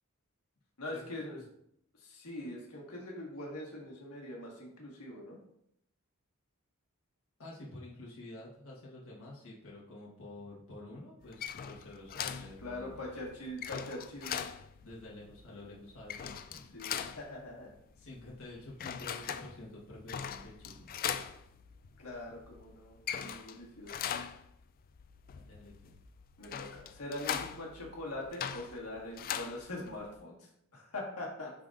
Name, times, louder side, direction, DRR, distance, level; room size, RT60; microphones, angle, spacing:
voice 1, 0.8-1.4 2.0-5.4 12.6-14.4 16.7-17.7 22.0-23.9 26.4-31.5, left 1 dB, 85° left, -2 dB, 1.6 m, -43 dB
voice 2, 7.4-13.0 14.8-16.5 17.9-20.9 25.3-25.9, left 2 dB, 65° left, -5 dB, 1.4 m, -49 dB
sound 1, 11.2-30.1, left 8 dB, 40° left, 0.3 m, -41 dB
10.5 x 3.8 x 2.5 m, 0.73 s
head